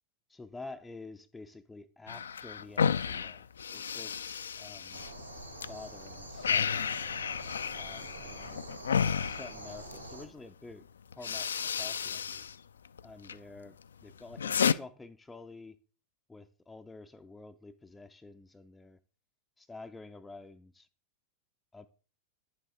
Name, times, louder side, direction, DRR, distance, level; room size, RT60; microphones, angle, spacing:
voice 1, 0.3-5.1 5.7-6.8 7.7-8.8 9.1-10.9 11.1-12.4 13.0-15.8 16.3-19.0 19.6-20.9 21.7-21.9, left 3 dB, 10° left, 0.5 m, -49 dB
sound 1, 2.1-5.7 6.0-10.1 10.7-10.8 11.1-12.6 12.8-13.4 13.8-14.7, left 7 dB, 70° left, 0.3 m, -32 dB
sound 2, 4.9-10.3, right 1 dB, 90° right, 1.3 m, -46 dB
10.5 x 7.4 x 3.7 m
figure-of-eight pair, 90°, 0 cm